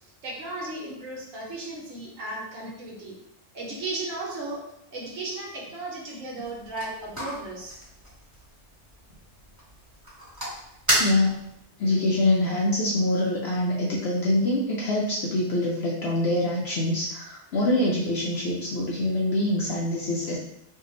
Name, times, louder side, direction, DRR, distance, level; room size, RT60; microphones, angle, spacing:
voice 1, 0.2-3.2 3.5-4.6 4.9-7.8, right 2 dB, 75° right, -3 dB, 1.2 m, -35 dB
sound 1, 6.4-11.6, equal, 15° right, 1.3 m, -32 dB
voice 2, 11.0-11.4 11.8-20.4, left 1 dB, 65° left, -5 dB, 0.8 m, -25 dB
2.7 x 2.3 x 3.8 m, 0.79 s
omnidirectional pair, 1.3 m